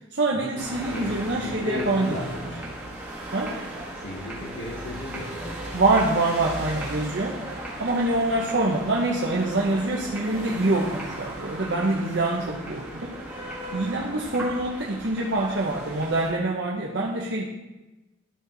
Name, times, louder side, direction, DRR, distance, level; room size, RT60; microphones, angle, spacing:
voice 1, 0.1-2.3 3.3-3.6 5.7-7.4 7.8-17.4, right 2 dB, 60° right, -3 dB, 0.9 m, -25 dB
sound 1, 0.6-16.3, right 1 dB, 10° right, 1.8 m, -37 dB
voice 2, 0.9-2.7 4.0-5.8, left 1 dB, 70° left, -4 dB, 1.3 m, -35 dB
13.0 x 4.4 x 4.0 m, 1.1 s
head